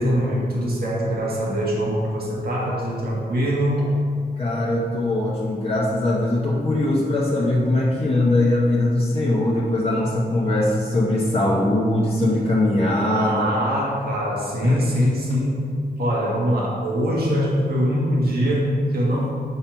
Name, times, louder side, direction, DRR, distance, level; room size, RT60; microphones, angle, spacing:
voice 1, 0.0-3.9 13.1-15.7 16.0-19.3, equal, 75° right, -4 dB, 1.6 m, -23 dB
voice 2, 4.4-13.6 14.6-14.9, left 1 dB, 35° left, -4 dB, 0.8 m, -21 dB
5.6 x 5.5 x 4.5 m, 2.1 s
wide cardioid pair, 135°, 16 cm